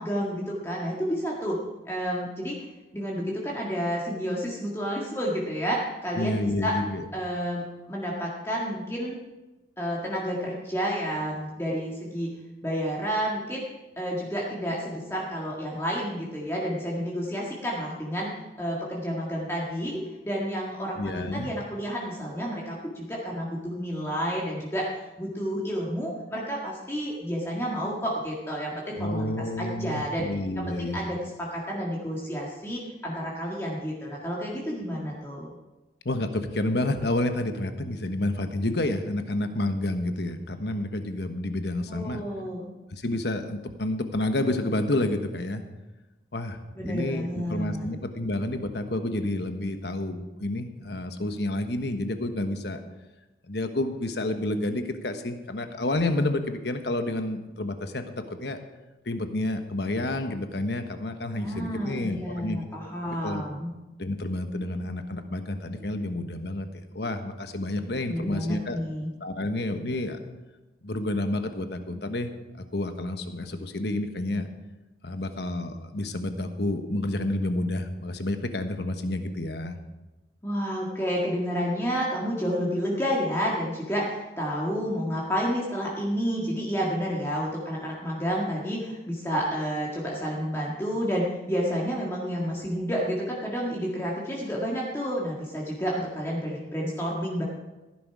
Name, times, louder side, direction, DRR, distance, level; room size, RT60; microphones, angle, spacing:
voice 1, 0.0-1.6 1.8-2.6 2.9-6.7 7.1-9.2 9.8-12.3 12.6-13.6 14.0-18.3 18.6-30.3 30.5-35.5 41.9-42.7 46.7-47.9 61.4-63.7 68.1-69.1 80.4-97.4, equal, 15° left, -4 dB, 1.8 m, -30 dB
voice 2, 6.2-7.0 21.0-21.5 29.0-31.0 36.0-42.2 42.9-45.6 46.3-46.6 46.9-52.8 53.5-58.6 59.0-62.6 63.1-63.4 64.0-66.7 66.9-68.8 69.2-70.2 70.8-72.3 72.7-74.5 75.0-79.8, left 1 dB, 65° left, 7 dB, 1.2 m, -29 dB
15.5 x 10.5 x 4.8 m, 1.1 s
head